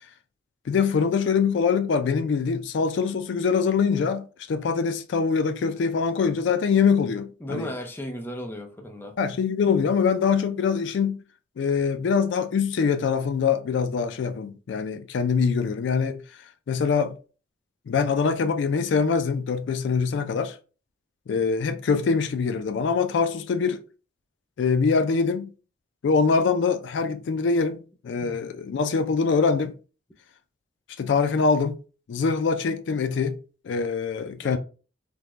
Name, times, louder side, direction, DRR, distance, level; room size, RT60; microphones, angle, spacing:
voice 1, 0.7-7.7 9.2-11.2 11.6-16.2 16.7-17.2 17.9-20.6 21.3-23.8 24.6-25.5 26.0-29.7 31.0-31.8 32.1-33.4 33.6-34.6, left 5 dB, 70° left, 0.3 m, -24 dB
voice 2, 7.4-9.2 28.2-28.4 34.4-34.6, equal, 10° left, 0.5 m, -35 dB
3.5 x 2.1 x 3.0 m
head